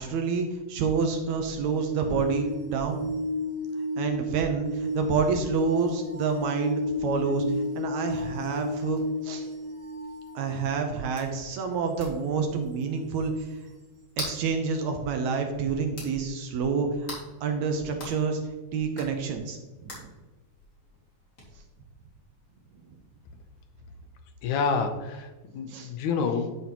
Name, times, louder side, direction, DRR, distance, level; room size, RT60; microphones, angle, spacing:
voice 1, 0.0-3.1 4.0-7.5 7.8-9.5 10.4-13.5 14.2-17.1 17.4-18.4 18.7-20.1 25.7-25.9, right 5 dB, 75° right, 4 dB, 2.0 m, -28 dB
sound 1, 1.3-11.1 13.4-13.5, left 1 dB, 50° right, 3.5 m, -33 dB
sound 2, 7.3-23.7, left 2 dB, 30° left, 2.2 m, -47 dB
voice 2, 24.4-26.6, left 5 dB, 75° left, 6 dB, 1.9 m, -28 dB
11.0 x 5.6 x 2.9 m, 1.2 s
omnidirectional pair, 3.6 m